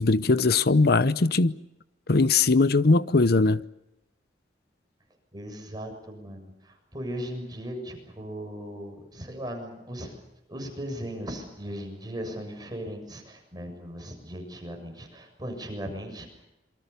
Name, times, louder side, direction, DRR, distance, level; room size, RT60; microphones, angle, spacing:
voice 1, 0.0-1.6 2.1-3.6, left 3 dB, 60° left, 0.8 m, -20 dB
voice 2, 5.3-10.2 10.5-16.3, equal, 25° right, 7.1 m, -37 dB
27.5 x 24.0 x 6.9 m
head